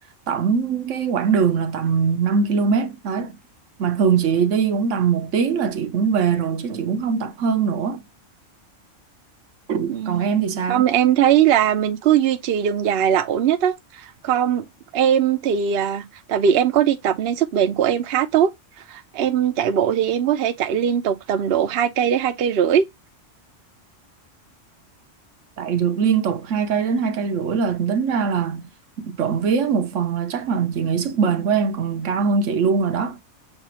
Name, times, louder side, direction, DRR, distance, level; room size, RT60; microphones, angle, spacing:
voice 1, 0.3-3.4 3.8-8.0 9.7-10.8 25.6-28.7 29.0-33.2, right 6 dB, 75° right, 1.1 m, -22 dB
voice 2, 9.9-10.3 10.7-14.6 14.9-18.5 18.9-22.9, right 9 dB, 60° right, 0.8 m, -20 dB
6.7 x 2.4 x 2.8 m
omnidirectional pair, 1.3 m